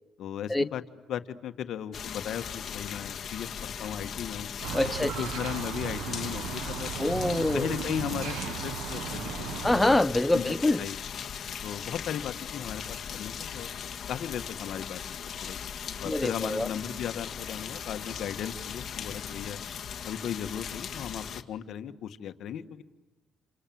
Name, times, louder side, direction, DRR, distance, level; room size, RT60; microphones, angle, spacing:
voice 1, 0.2-0.8 1.1-4.5 5.2-6.9 7.5-10.0 10.3-11.0 11.6-13.7 14.1-15.0 15.4-15.6 16.0-19.6 20.0-22.8, left 9 dB, 75° left, 1.7 m, -36 dB
sound 1, 1.9-21.4, left 8 dB, 55° left, 2.0 m, -38 dB
sound 2, 4.6-10.0, right 10 dB, 85° right, 1.1 m, -36 dB
voice 2, 4.7-5.1 7.0-7.7 9.6-10.8 16.1-16.7, left 2 dB, 10° left, 0.9 m, -25 dB
29.0 x 26.0 x 7.8 m
cardioid pair, 90°, 0 cm